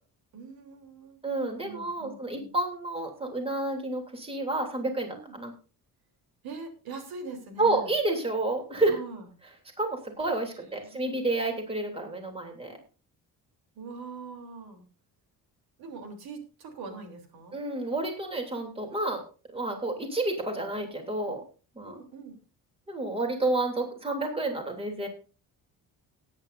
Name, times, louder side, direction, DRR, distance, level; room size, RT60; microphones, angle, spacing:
voice 1, 0.3-1.2 1.6-2.5 5.1-5.4 6.4-7.9 8.9-9.2 10.6-11.3 13.8-14.8 15.8-17.6 21.8-22.4, right 4 dB, 80° right, 4 dB, 3.5 m, -43 dB
voice 2, 1.2-5.5 7.6-8.9 9.8-12.8 17.5-19.2 19.5-21.4 21.7-21.9 22.9-25.1, right 2 dB, 15° right, 3 dB, 3.0 m, -30 dB
19.0 x 9.6 x 2.6 m, 0.35 s
cardioid pair, 130°, 36 cm